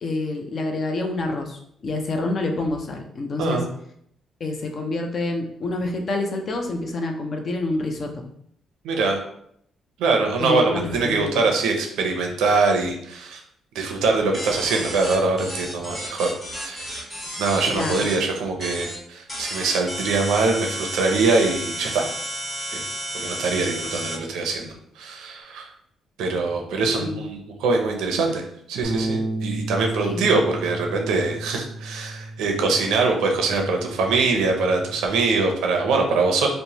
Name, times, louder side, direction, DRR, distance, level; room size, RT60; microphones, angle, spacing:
voice 1, 0.0-3.6 4.4-8.2 10.4-11.5 17.7-18.1 26.8-27.3 30.0-30.3, left 2 dB, 50° left, 4 dB, 0.5 m, -27 dB
voice 2, 8.8-9.2 10.0-13.4 13.7-17.1 17.4-22.1 22.7-22.8 23.1-25.7 26.2-36.5, right 3 dB, 90° right, 2 dB, 0.5 m, -23 dB
sound 1, 14.3-18.2 18.6-19.0 19.3-24.2, right 1 dB, 10° left, 1.3 m, -32 dB
Bass guitar, 28.8-35.1, right 2 dB, 20° right, 0.5 m, -33 dB
3.0 x 2.1 x 2.8 m, 0.69 s
cardioid pair, 90°, 0 cm